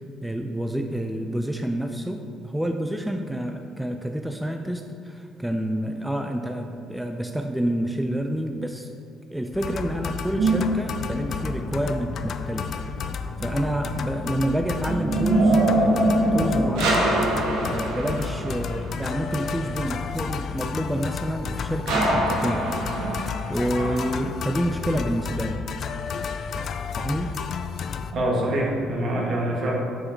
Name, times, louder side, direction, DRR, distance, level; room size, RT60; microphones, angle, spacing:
voice 1, 0.2-8.9 9.3-17.2 17.6-22.7 23.5-25.6 27.0-27.4, right 1 dB, 5° right, 4 dB, 0.5 m, -28 dB
sound 1, 9.5-28.1, left 6 dB, 55° left, 0.4 m, -32 dB
sound 2, 10.4-11.6 14.2-19.0 21.9-24.2, right 1 dB, 90° right, 1.4 m, -24 dB
voice 2, 28.1-29.7, right 1 dB, 55° right, -1 dB, 1.8 m, -25 dB
6.2 x 5.1 x 5.8 m, 2.4 s
supercardioid pair, 80°, 0 cm